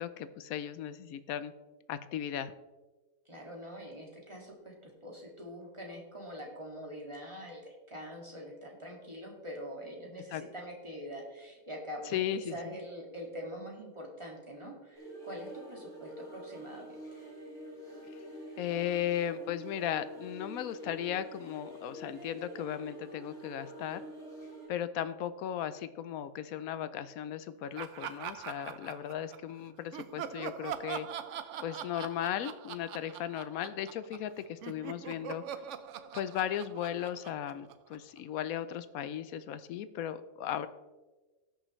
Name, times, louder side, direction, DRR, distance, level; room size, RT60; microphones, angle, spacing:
voice 1, 0.0-1.5 1.9-2.5 10.3-10.4 12.1-12.7 18.6-24.0 24.7-31.1 31.6-35.4 36.1-40.7, left 10 dB, 85° left, 13 dB, 1.1 m, -36 dB
voice 2, 3.3-17.0, equal, 20° right, -1 dB, 2.2 m, -44 dB
sound 1, 14.9-24.7, right 1 dB, 20° left, 4.1 m, -47 dB
Laughter, 27.8-29.5 29.9-34.3 34.6-38.2, right 9 dB, 65° right, 0.9 m, -42 dB
18.0 x 6.5 x 3.2 m, 1.2 s
omnidirectional pair, 1.4 m